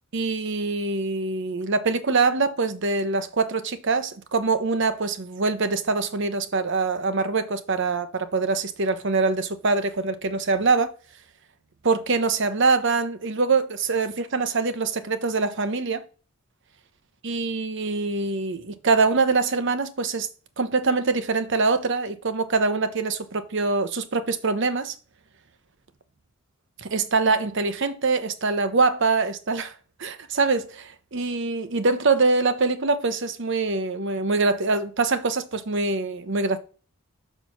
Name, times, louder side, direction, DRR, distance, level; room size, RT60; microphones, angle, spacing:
voice 1, 0.1-10.9 11.8-16.0 17.2-20.3 20.6-24.9 26.8-29.7 30.0-36.6, right 4 dB, 55° right, 0.9 m, -24 dB
6.8 x 4.6 x 5.8 m
head